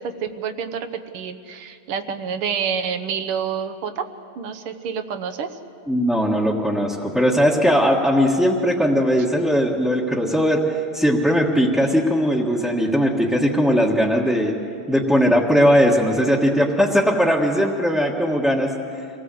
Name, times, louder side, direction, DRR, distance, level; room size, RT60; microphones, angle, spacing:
voice 1, 0.0-4.1 4.4-5.5, right 7 dB, 80° right, 8 dB, 1.9 m, -28 dB
voice 2, 5.9-14.5 14.9-18.7, equal, ahead, -5 dB, 1.1 m, -19 dB
26.0 x 18.0 x 7.7 m, 2.7 s
omnidirectional pair, 2.4 m